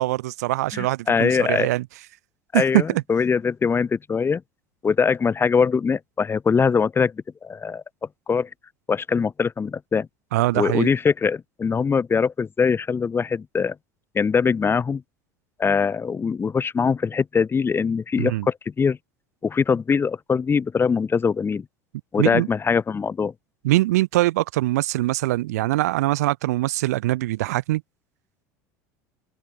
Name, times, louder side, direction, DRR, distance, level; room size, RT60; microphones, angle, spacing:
voice 1, 0.0-1.8 2.5-3.0 10.3-10.9 18.2-18.5 22.2-22.5 23.6-27.8, right 17 dB, 85° right, 2.9 m, -22 dB
voice 2, 0.7-1.7 2.5-4.4 4.8-7.8 8.3-8.5 8.9-10.1 10.5-13.8 14.1-15.0 15.6-19.0 19.4-21.7 22.1-23.3, left 5 dB, 25° left, 5.5 m, -22 dB
open air
hypercardioid pair, 90°, 8 cm